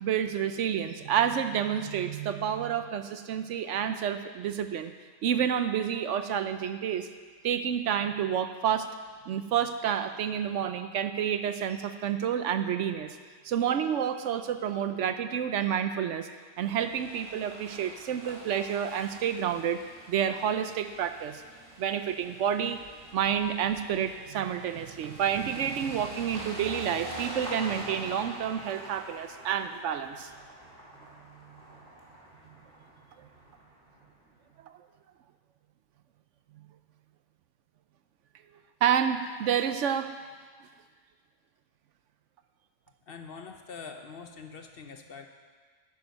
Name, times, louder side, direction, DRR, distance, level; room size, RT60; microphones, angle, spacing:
voice 1, 0.0-4.9 5.2-7.1 7.4-8.9 9.3-13.1 13.4-16.3 16.6-19.8 20.1-21.4 21.8-22.8 23.1-30.3 34.7-34.8 38.8-40.1, right 9 dB, 75° right, 9 dB, 0.9 m, -29 dB
sound 1, 16.6-34.2, right 1 dB, 40° right, 2.4 m, -45 dB
voice 2, 43.1-45.3, left 5 dB, 55° left, 5 dB, 0.9 m, -44 dB
10.5 x 9.3 x 5.3 m, 1.5 s
omnidirectional pair, 1.3 m